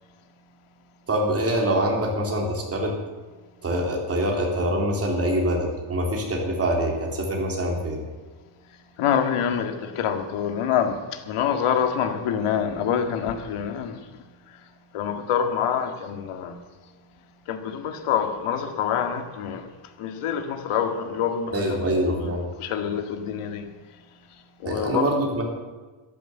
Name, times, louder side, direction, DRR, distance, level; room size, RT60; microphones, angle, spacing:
voice 1, 1.1-3.0 3.6-8.0 21.5-22.5 24.7-25.4, right 1 dB, 30° right, 3.7 m, -25 dB
voice 2, 9.0-11.0 11.3-14.0 14.9-16.5 17.5-19.6 20.0-22.3 22.6-23.7 24.6-25.1, left 8 dB, 80° left, 2.0 m, -26 dB
13.5 x 11.0 x 8.0 m
cardioid pair, 150°, 50 cm